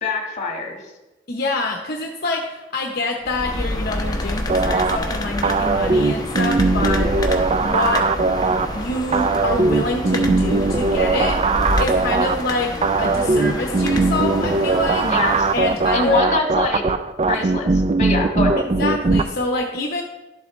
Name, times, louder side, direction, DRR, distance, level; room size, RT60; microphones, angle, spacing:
voice 1, 0.0-0.8 15.0-15.5 15.9-16.8 17.3-18.6, left 3 dB, 40° left, 2 dB, 1.6 m, -24 dB
voice 2, 1.3-7.1 7.6-8.1 8.7-11.4 11.8-15.1 15.5-16.3 17.3-17.5 18.8-20.0, left 2 dB, 55° left, 1 dB, 0.9 m, -25 dB
sound 1, 3.2-16.2, left 1 dB, 20° left, 0.9 m, -28 dB
sound 2, 4.5-19.2, right 3 dB, 35° right, 0.4 m, -20 dB
11.5 x 7.6 x 3.1 m, 1.1 s
head